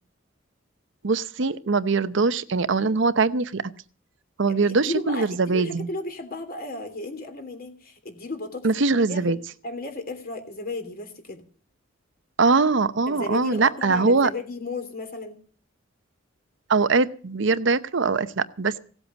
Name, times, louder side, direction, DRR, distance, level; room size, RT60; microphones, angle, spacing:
voice 1, 1.0-3.6 4.4-5.9 8.6-9.4 12.4-14.3 16.7-18.8, right 4 dB, 65° right, 13 dB, 0.8 m, -22 dB
voice 2, 4.5-8.7 9.1-9.4 9.6-11.4 13.1-15.4, left 2 dB, 50° left, 6 dB, 3.2 m, -34 dB
17.0 x 8.1 x 8.1 m, 0.44 s
head